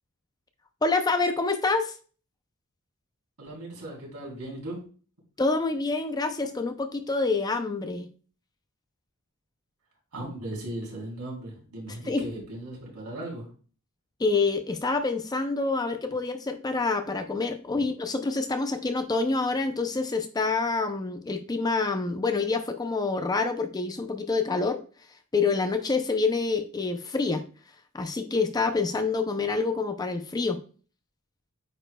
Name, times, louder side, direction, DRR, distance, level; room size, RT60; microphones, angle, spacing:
voice 1, 0.8-2.0 5.4-8.1 12.1-12.3 14.2-24.8 25.3-27.4 27.9-30.6, left 3 dB, 15° left, 8 dB, 0.4 m, -27 dB
voice 2, 3.4-4.8 10.1-13.5 17.7-17.8, right 1 dB, 90° right, -3 dB, 3.3 m, -37 dB
8.6 x 5.0 x 2.2 m, 0.40 s
head